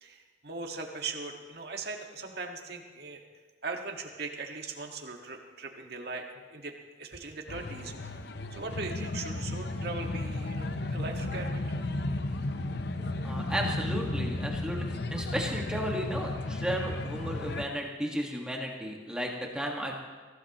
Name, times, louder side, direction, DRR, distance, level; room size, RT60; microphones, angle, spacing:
voice 1, 0.0-3.2 3.6-7.9 8.5-11.8, right 3 dB, 60° right, 2 dB, 1.7 m, -39 dB
sound 1, 7.5-17.7, left 2 dB, 60° left, 0.8 m, -34 dB
voice 2, 13.2-14.8 15.1-20.0, equal, 5° right, -1 dB, 1.6 m, -34 dB
23.0 x 16.0 x 3.0 m, 1.4 s
head